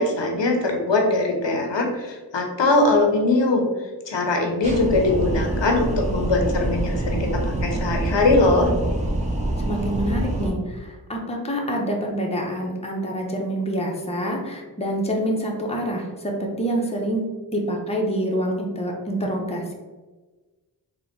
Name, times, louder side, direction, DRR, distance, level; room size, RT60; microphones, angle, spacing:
voice 1, 0.0-3.6 4.1-8.7, left 2 dB, 85° left, 2 dB, 0.7 m, -21 dB
sound 1, 4.6-10.5, right 2 dB, 15° right, 0.6 m, -26 dB
voice 2, 9.7-19.7, equal, 15° left, 0 dB, 0.7 m, -26 dB
3.8 x 2.2 x 3.5 m, 1.3 s
wide cardioid pair, 55°, 42 cm